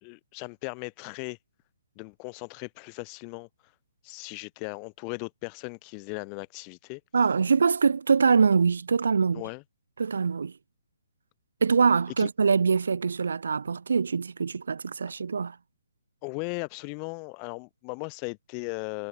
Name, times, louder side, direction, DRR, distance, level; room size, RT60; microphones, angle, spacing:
voice 1, 0.0-1.4 2.0-3.5 4.0-7.0 9.3-9.6 12.2-12.3 16.2-19.1, left 40 dB or more, 25° left, 4.5 m, -37 dB
voice 2, 7.1-9.4 10.0-10.5 11.6-15.6, right 5 dB, 60° right, 0.6 m, -23 dB
figure-of-eight pair, 130°, 0 cm